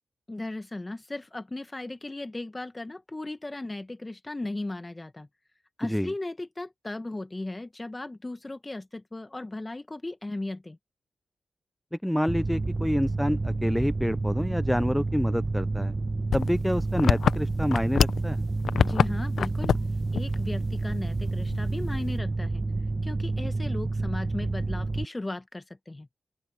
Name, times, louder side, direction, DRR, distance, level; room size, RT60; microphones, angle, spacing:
voice 1, 0.3-5.3 5.8-10.8 18.8-19.7 20.1-22.6 23.0-26.1, left 2 dB, 25° left, 1.0 m, -36 dB
voice 2, 5.8-6.1 11.9-15.9 16.3-18.4, equal, 5° left, 0.5 m, -27 dB
Mechanical fan, 12.3-25.0, right 3 dB, 30° right, 1.4 m, -29 dB
sound 1, 16.3-18.3 18.6-19.1 19.4-19.9 20.1-20.3 20.7-20.8 21.5-21.9, left 7 dB, 80° left, 0.6 m, -24 dB
open air
cardioid pair, 50°, 0 cm